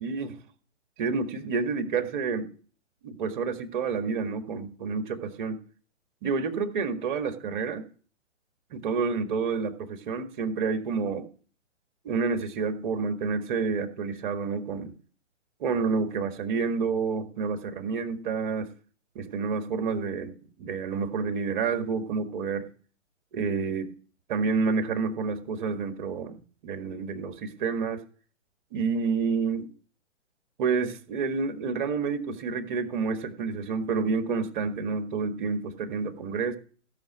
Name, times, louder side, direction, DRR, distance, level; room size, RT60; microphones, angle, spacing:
voice 1, 0.0-0.4 1.0-2.5 3.0-5.6 6.2-7.8 8.7-11.3 12.0-14.9 15.6-18.7 19.2-20.3 20.6-22.7 23.3-23.9 24.3-28.0 28.7-29.7 30.6-36.6, right 5 dB, 40° right, 7 dB, 1.8 m, -29 dB
16.0 x 6.3 x 6.0 m, 0.41 s
hypercardioid pair, 140°, 37 cm